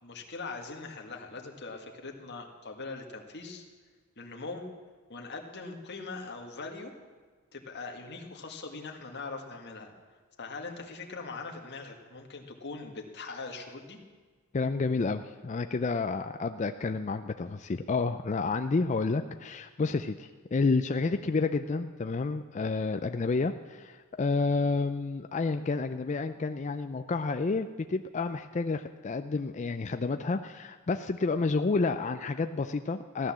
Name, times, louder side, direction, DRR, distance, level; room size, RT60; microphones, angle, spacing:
voice 1, 0.0-3.6 4.2-4.7 5.1-6.9 7.5-9.9 10.4-14.0, left 3 dB, 50° left, 2 dB, 1.9 m, -41 dB
voice 2, 14.5-33.3, left 4 dB, 30° left, 8 dB, 0.4 m, -30 dB
15.5 x 11.5 x 7.4 m, 1.4 s
head